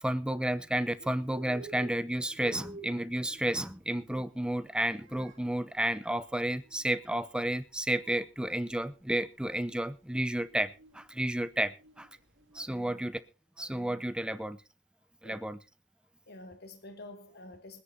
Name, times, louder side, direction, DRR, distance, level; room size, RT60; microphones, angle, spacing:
voice 1, 0.0-12.1 12.5-13.2 13.6-14.6 15.2-15.6, right 1 dB, 5° right, 0.7 m, -32 dB
Bird, 0.8-13.0, right 3 dB, 70° right, 2.8 m, -53 dB
voice 2, 16.3-17.8, left 2 dB, 55° left, 1.4 m, -49 dB
25.5 x 10.0 x 2.8 m
head